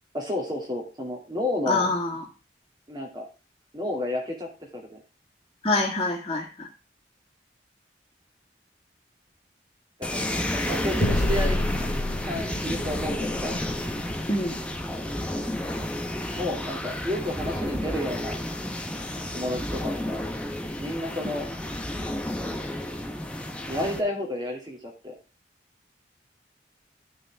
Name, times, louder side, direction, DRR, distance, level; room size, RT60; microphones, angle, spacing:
voice 1, 0.1-1.9 2.9-3.3 3.7-5.0 10.0-11.9 12.2-13.6 16.4-18.4 19.3-20.2 20.8-21.5 23.6-25.1, left 1 dB, 25° right, 1 dB, 2.5 m, -31 dB
voice 2, 1.7-2.2 5.6-6.7 14.3-14.6 21.2-21.3, left 2 dB, 25° left, -6 dB, 2.0 m, -26 dB
sound 1, 10.0-24.0, left 1 dB, 5° left, 1.0 m, -31 dB
sound 2, 11.0-15.8, left 1 dB, 85° left, 1.7 m, -30 dB
12.5 x 6.2 x 3.5 m, 0.33 s
head